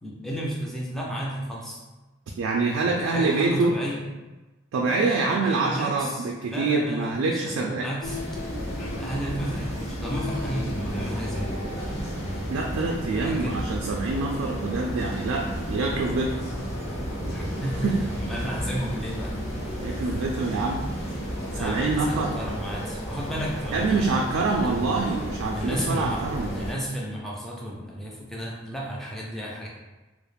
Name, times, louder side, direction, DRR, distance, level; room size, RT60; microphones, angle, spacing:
voice 1, 0.0-1.8 2.8-4.0 4.8-8.2 9.0-11.6 13.1-13.7 17.3-19.4 20.0-20.2 21.5-24.2 24.5-24.7 25.5-26.3 26.5-29.7, equal, ahead, -4 dB, 0.3 m, -33 dB
voice 2, 2.4-3.8 4.7-7.9 12.5-16.3 17.8-18.0 19.8-20.8 21.6-22.3 23.7-26.5, right 3 dB, 85° right, 0 dB, 0.3 m, -25 dB
sound 1, 8.0-26.7, equal, 85° left, 0.8 m, -33 dB
sound 2, 8.4-22.6, equal, 45° left, 0.6 m, -37 dB
2.3 x 2.0 x 3.1 m, 1.1 s
head